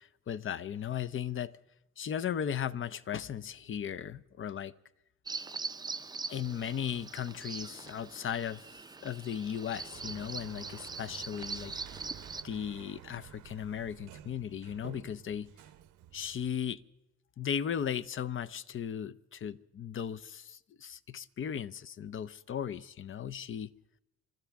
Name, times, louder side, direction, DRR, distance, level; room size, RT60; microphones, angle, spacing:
voice 1, 0.0-1.6 2.0-4.7 6.3-11.7 12.4-15.5 16.1-16.8 17.4-23.7, left 8 dB, 45° left, 0.6 m, -37 dB
Bird vocalization bird call bird song, 5.3-12.4, right 4 dB, 15° right, 0.5 m, -42 dB
Sliding door, 9.5-16.7, right 11 dB, 85° right, 0.8 m, -51 dB
28.0 x 13.0 x 3.5 m
cardioid pair, 90°, 30 cm